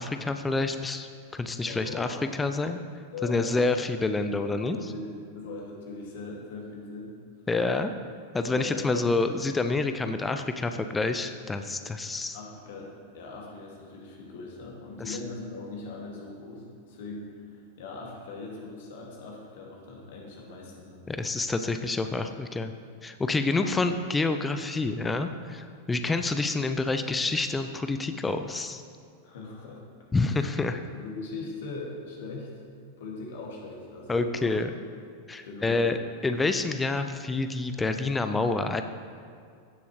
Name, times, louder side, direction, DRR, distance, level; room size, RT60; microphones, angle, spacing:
voice 1, 0.0-2.8 3.2-4.8 7.5-7.9 8.3-12.4 15.1-15.2 21.1-22.7 23.0-28.8 30.1-30.8 34.1-34.7 35.3-36.0 36.2-38.8, left 3 dB, 10° left, 8 dB, 0.5 m, -28 dB
voice 2, 1.6-2.2 3.1-3.6 4.2-4.3 4.6-7.1 8.5-9.1 12.3-21.0 29.2-29.8 30.1-30.5 30.9-32.5 33.0-34.6 35.4-35.9, left 3 dB, 55° left, -2 dB, 2.2 m, -40 dB
16.0 x 7.0 x 3.2 m, 2.3 s
figure-of-eight pair, 90°, 0 cm